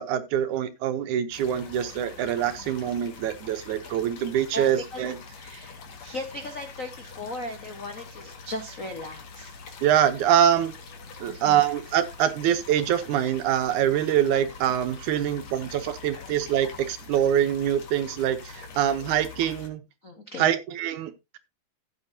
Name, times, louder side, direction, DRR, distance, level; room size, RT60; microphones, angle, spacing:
voice 1, 0.0-5.2 9.8-10.7 11.2-19.8 20.4-21.4, right 10 dB, 75° right, 2.2 m, -24 dB
sound 1, 1.3-19.7, left 5 dB, 55° left, 2.8 m, -44 dB
voice 2, 4.5-9.5 11.3-11.6 16.1-16.2 20.0-20.5, left 1 dB, 70° left, 0.7 m, -37 dB
14.5 x 7.9 x 2.7 m
omnidirectional pair, 3.8 m